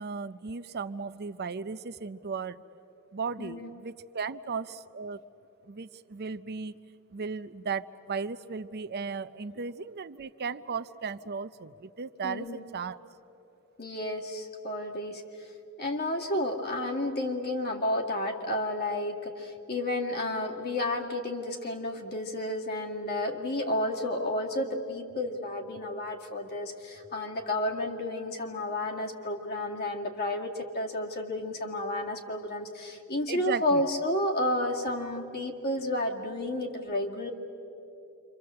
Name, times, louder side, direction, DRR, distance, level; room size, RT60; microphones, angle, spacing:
voice 1, 0.0-2.6 3.1-5.2 5.7-6.7 7.1-13.0 33.3-33.8, right 5 dB, 45° right, 12 dB, 0.6 m, -36 dB
voice 2, 3.4-3.7 12.2-12.6 13.8-15.5 15.8-37.3, left 1 dB, 50° left, 1 dB, 2.3 m, -31 dB
28.0 x 25.5 x 7.7 m, 2.9 s
head